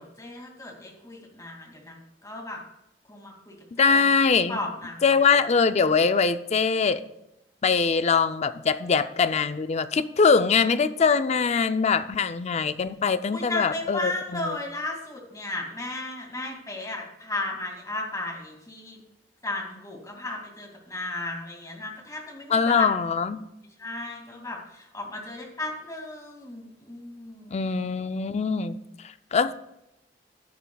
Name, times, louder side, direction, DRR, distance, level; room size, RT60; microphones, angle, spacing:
voice 1, 0.0-2.6 3.1-5.0 13.3-19.0 19.4-22.9 23.8-27.6, left 2 dB, 20° left, 0 dB, 2.2 m, -35 dB
voice 2, 3.8-4.6 5.0-7.0 7.6-14.6 22.5-23.4 27.5-28.8 29.3-29.6, left 5 dB, 40° left, 12 dB, 0.4 m, -22 dB
14.5 x 10.0 x 2.3 m, 0.85 s
head